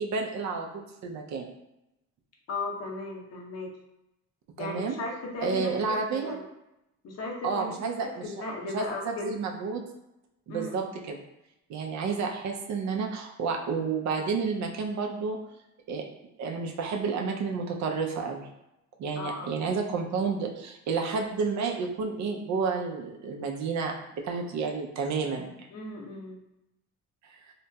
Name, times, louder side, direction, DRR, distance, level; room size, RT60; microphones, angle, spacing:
voice 1, 0.0-1.5 4.6-5.0 5.4-6.4 7.4-8.2 8.7-9.8 10.5-11.2 11.7-15.4 15.9-16.1 16.4-18.5 19.0-25.7 27.2-27.4, right 5 dB, 65° right, 2 dB, 0.5 m, -30 dB
voice 2, 2.5-3.7 4.6-5.7 6.1-6.4 7.0-7.9 8.2-9.3 10.5-11.0 19.2-19.7 25.7-26.4, left 2 dB, 55° left, 0 dB, 0.7 m, -36 dB
2.9 x 2.7 x 2.2 m, 0.89 s
cardioid pair, 90°, 30 cm